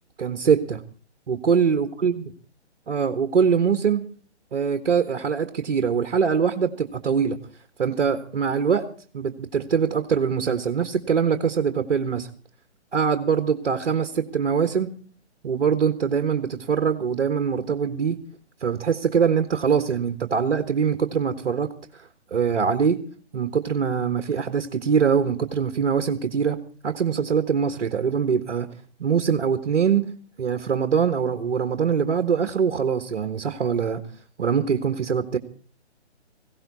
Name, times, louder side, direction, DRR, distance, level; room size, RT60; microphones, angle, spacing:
voice 1, 0.2-0.8 1.3-2.1 2.9-4.1 4.5-7.4 7.8-8.9 9.1-12.3 12.9-14.9 15.4-18.2 18.6-23.0 23.3-28.7 29.0-30.1 30.4-34.0 34.4-35.4, right 6 dB, 55° right, 8 dB, 1.5 m, -23 dB
19.5 x 16.5 x 4.1 m, 0.43 s
figure-of-eight pair, 145°, 35 cm